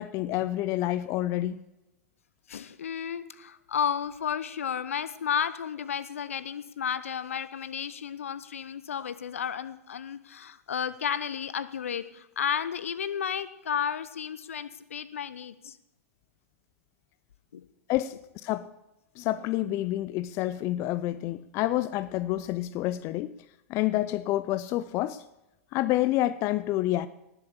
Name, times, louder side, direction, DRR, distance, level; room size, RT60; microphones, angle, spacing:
voice 1, 0.0-1.6 17.9-18.2 18.4-18.7 19.2-23.3 23.7-25.2 25.7-27.1, left 15 dB, 35° left, 16 dB, 0.5 m, -28 dB
voice 2, 2.5-15.8 17.5-17.7, left 8 dB, 70° left, 15 dB, 0.9 m, -32 dB
18.5 x 7.8 x 7.3 m, 0.92 s
figure-of-eight pair, 95°, 8 cm